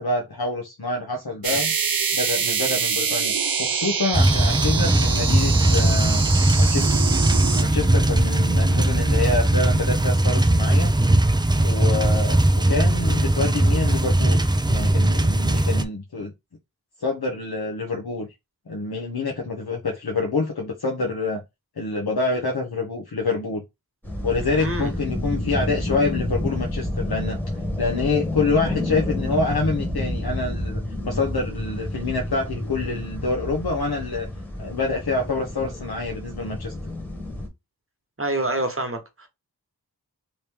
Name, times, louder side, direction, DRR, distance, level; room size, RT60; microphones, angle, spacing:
voice 1, 0.0-1.7 2.1-3.3 3.6-6.2 6.6-7.1 7.6-10.9 11.6-16.3 17.0-18.3 18.7-21.4 21.8-23.6 24.2-27.4 27.8-34.3 34.6-36.7, left 3 dB, 65° left, 0.8 m, -27 dB
sound 1, 1.4-7.6, right 6 dB, 60° right, 0.6 m, -25 dB
sound 2, 4.1-15.8, right 1 dB, 10° right, 0.3 m, -19 dB
sound 3, 24.0-37.5, left 1 dB, 5° left, 1.3 m, -29 dB
voice 2, 24.4-24.9 38.2-39.3, right 2 dB, 35° right, 1.1 m, -27 dB
3.0 x 2.9 x 3.4 m
wide cardioid pair, 45°, 40 cm